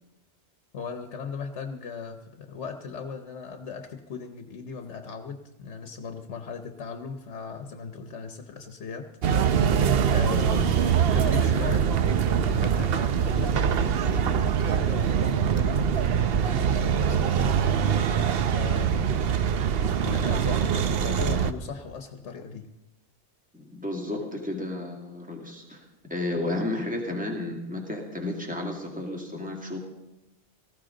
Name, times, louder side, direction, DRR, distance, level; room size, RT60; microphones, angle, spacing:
voice 1, 0.7-11.9 12.3-19.5 20.0-22.7, left 5 dB, 90° left, 6 dB, 1.2 m, -38 dB
sound 1, 9.2-21.5, right 8 dB, 65° right, 0.9 m, -23 dB
voice 2, 23.5-25.8 26.1-29.8, left 2 dB, 5° right, 0 dB, 2.2 m, -32 dB
18.5 x 14.5 x 3.8 m, 0.96 s
omnidirectional pair, 1.1 m